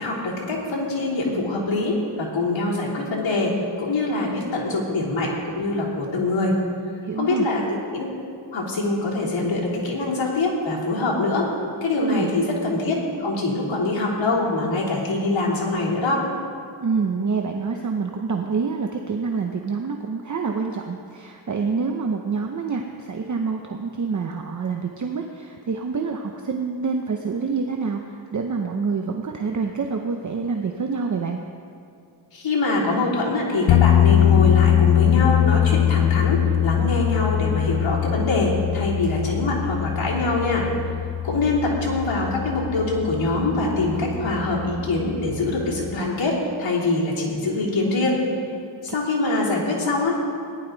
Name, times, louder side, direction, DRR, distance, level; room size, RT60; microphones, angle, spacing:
voice 1, 0.0-3.5 3.8-6.5 7.1-7.6 7.9-8.0 8.5-11.5 11.8-16.2 32.3-40.7 41.2-48.2 48.8-50.2, left 2 dB, 80° left, -6 dB, 3.3 m, -24 dB
voice 2, 7.0-7.5 12.0-12.4 16.8-28.0 28.3-31.4, right 5 dB, 40° right, 3 dB, 0.8 m, -26 dB
sound 1, 33.7-46.0, left 11 dB, 65° left, 0.7 m, -22 dB
18.0 x 11.0 x 4.0 m, 2.4 s
wide cardioid pair, 120°, 46 cm